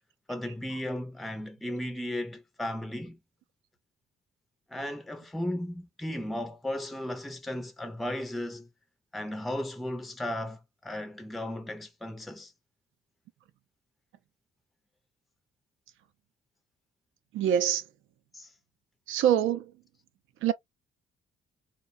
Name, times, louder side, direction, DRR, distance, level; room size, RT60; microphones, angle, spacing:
voice 1, 0.3-3.2 4.7-8.7 9.1-12.5 18.3-18.5, left 1 dB, ahead, 0.4 m, -35 dB
voice 2, 17.3-17.8 19.1-19.7 20.4-20.5, right 10 dB, 80° right, 0.5 m, -25 dB
2.4 x 2.2 x 2.5 m
cardioid pair, 90°, 20 cm